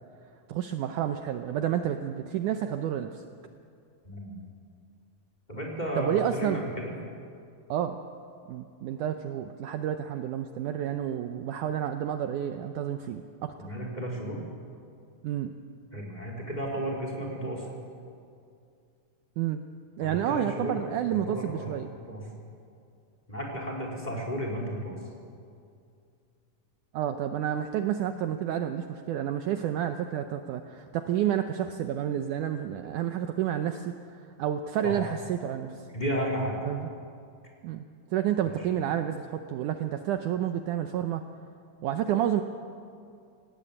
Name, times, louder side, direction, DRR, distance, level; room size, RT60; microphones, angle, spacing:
voice 1, 0.5-3.2 6.0-6.6 7.7-8.0 8.5-13.7 15.2-15.5 19.4-19.6 20.0-21.9 26.9-33.9 34.4-35.9 36.6-36.9 37.6-37.8 38.1-41.3 41.8-42.4, right 10 dB, 75° right, 7 dB, 2.1 m, -30 dB
voice 2, 4.0-4.4 5.5-6.9 13.6-14.4 15.9-17.7 20.0-20.8 21.1-21.7 22.1-22.2 23.3-25.0 34.8-35.0 35.9-36.6 38.4-38.7, equal, 10° left, 0 dB, 4.0 m, -33 dB
27.0 x 18.0 x 8.6 m, 2.4 s
omnidirectional pair, 4.2 m